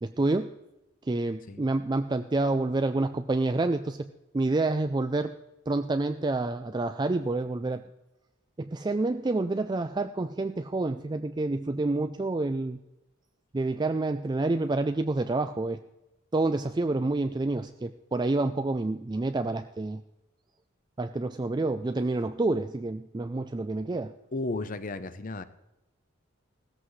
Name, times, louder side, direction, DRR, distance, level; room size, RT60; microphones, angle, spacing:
voice 1, 0.0-0.5 1.1-4.1 4.3-5.3 5.7-7.8 8.6-12.8 13.5-15.8 16.3-20.0 21.0-24.1, right 2 dB, 20° right, 9 dB, 0.4 m, -28 dB
voice 2, 24.3-25.4, left 2 dB, 40° left, 12 dB, 0.7 m, -33 dB
16.0 x 13.5 x 3.2 m, 0.93 s
head